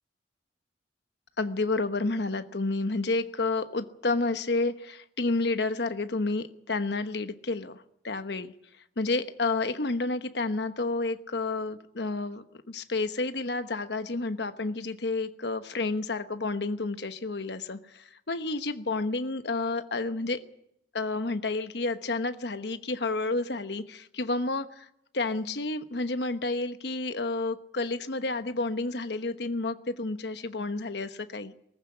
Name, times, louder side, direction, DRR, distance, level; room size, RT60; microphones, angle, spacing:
voice 1, 1.4-8.5 9.0-20.4 20.9-24.9 25.1-31.5, left 3 dB, 70° left, 10 dB, 1.1 m, -30 dB
19.0 x 14.5 x 9.6 m, 0.78 s
head